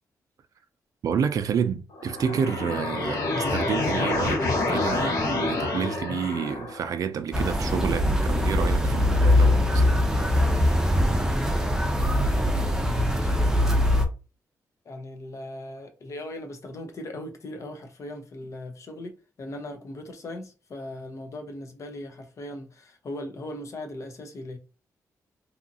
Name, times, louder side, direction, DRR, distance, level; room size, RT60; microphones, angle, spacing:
voice 1, 1.0-9.9, right 7 dB, 65° right, 0.4 m, -29 dB
sound 1, 1.9-6.9, left 2 dB, 75° left, 1.2 m, -27 dB
sound 2, 7.3-14.0, left 1 dB, 10° right, 0.5 m, -22 dB
voice 2, 11.0-11.7 12.0-13.8 14.8-24.6, left 1 dB, 55° left, 0.7 m, -39 dB
2.7 x 2.5 x 2.7 m
cardioid pair, 100°, 6 cm